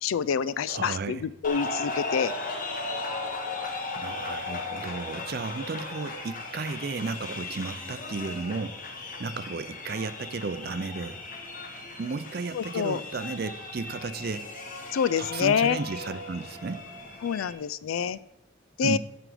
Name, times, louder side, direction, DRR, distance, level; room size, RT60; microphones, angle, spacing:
voice 1, 0.0-2.3 12.5-13.0 14.9-15.8 17.2-18.2 18.8-19.0, left 7 dB, 85° left, 16 dB, 0.4 m, -27 dB
voice 2, 0.7-1.2 4.0-8.8 9.2-11.2 12.0-14.5 15.2-16.8 18.8-19.0, right 4 dB, 50° right, 12 dB, 0.4 m, -34 dB
sound 1, 1.4-17.5, left 3 dB, 40° left, 1.2 m, -37 dB
12.5 x 5.0 x 4.9 m, 0.91 s
head